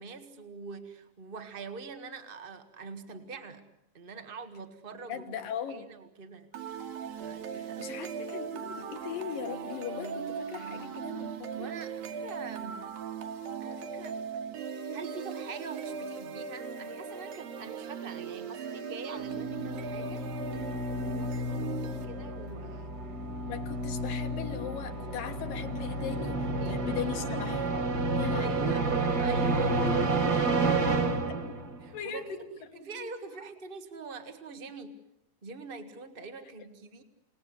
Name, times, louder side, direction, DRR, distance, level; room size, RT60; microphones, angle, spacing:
voice 1, 0.0-3.7 3.9-5.4 5.7-6.5 7.2-8.0 11.5-12.9 13.6-14.2 14.9-20.2 21.1-22.9 26.6-26.9 28.4-28.8 29.2-30.7 31.8-32.4 32.7-35.0 35.4-37.0, right 4 dB, 90° right, 8 dB, 0.4 m, -44 dB
voice 2, 5.1-5.9 7.5-11.7 23.5-27.7 28.2-28.8 31.9-32.4 32.9-33.4, left 8 dB, 70° left, 5 dB, 3.3 m, -39 dB
sound 1, 6.5-22.5, right 6 dB, 75° right, 3.5 m, -39 dB
sound 2, 19.2-31.8, right 2 dB, 35° right, 1.8 m, -30 dB
28.5 x 19.0 x 9.8 m, 0.84 s
omnidirectional pair, 4.3 m